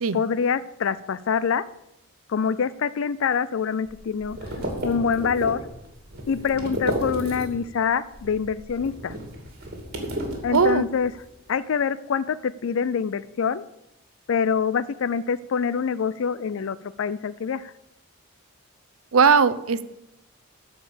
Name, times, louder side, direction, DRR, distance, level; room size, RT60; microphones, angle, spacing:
voice 1, 0.1-1.6 2.3-4.4 4.8-5.6 6.3-9.1 10.4-11.1 11.5-13.6 14.3-17.7, left 6 dB, 60° left, 17 dB, 0.4 m, -25 dB
sound 1, 3.9-7.8 8.1-11.2, right 1 dB, 45° right, 2.6 m, -33 dB
voice 2, 6.6-6.9 10.5-10.9 19.1-19.9, right 5 dB, 75° right, 14 dB, 0.6 m, -20 dB
14.0 x 5.1 x 6.8 m, 0.88 s
head